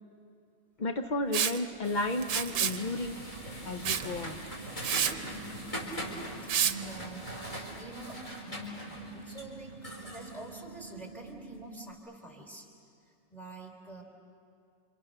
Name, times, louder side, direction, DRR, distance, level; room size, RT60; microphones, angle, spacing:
voice 1, 0.8-3.2 3.6-4.4, left 2 dB, 65° left, 7 dB, 0.4 m, -33 dB
Liquid, 1.3-1.6 2.2-2.8 3.8-4.1 4.5-4.6 4.8-5.1 6.5-6.7, right 9 dB, 65° right, 1.3 m, -28 dB
sound 1, 1.8-11.4, equal, 20° left, 4.5 m, -42 dB
sound 2, 1.9-11.9, right 5 dB, 35° right, 1.7 m, -49 dB
voice 2, 5.3-5.7 6.0-9.7 10.0-12.6 13.0-14.0, right 1 dB, ahead, 1 dB, 3.9 m, -46 dB
28.5 x 26.5 x 6.7 m, 2.5 s
omnidirectional pair, 1.9 m